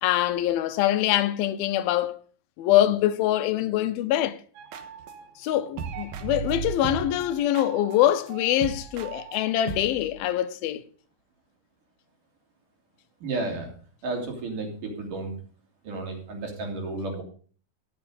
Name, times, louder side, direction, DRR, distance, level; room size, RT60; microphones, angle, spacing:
voice 1, 0.0-2.2 2.6-4.4 5.4-10.8, left 13 dB, 90° left, 2.7 m, -24 dB
sound 1, 4.6-5.5 5.8-10.2, right 7 dB, 85° right, 3.2 m, -37 dB
voice 2, 13.2-13.7 14.0-15.4 15.8-17.2, right 2 dB, 60° right, 4.5 m, -32 dB
13.0 x 9.1 x 5.1 m
omnidirectional pair, 4.2 m